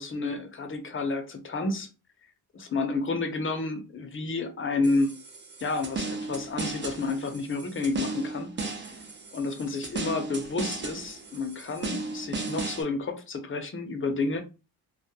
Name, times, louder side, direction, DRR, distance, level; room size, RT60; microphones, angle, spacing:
voice 1, 0.0-1.9 2.5-5.1 5.6-8.5 9.3-14.4, left 3 dB, 30° left, 0.5 m, -30 dB
sound 1, 4.8-12.8, right 3 dB, 30° right, 0.5 m, -36 dB
2.2 x 2.1 x 2.8 m
cardioid pair, 85°, 41 cm